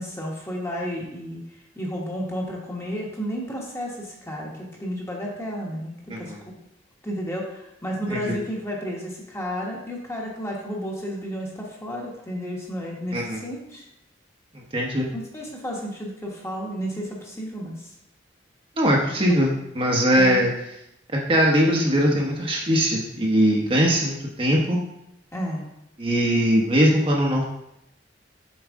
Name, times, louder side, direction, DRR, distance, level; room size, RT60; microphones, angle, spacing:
voice 1, 0.0-1.4 1.7-6.5 7.0-13.9 15.1-17.9 19.3-19.4 20.1-20.4 25.3-25.7, equal, 15° left, -2 dB, 1.2 m, -32 dB
voice 2, 14.5-15.1 18.8-20.5 21.1-24.8 26.0-27.4, equal, 30° right, -2 dB, 0.9 m, -21 dB
7.3 x 4.7 x 3.6 m, 0.83 s
head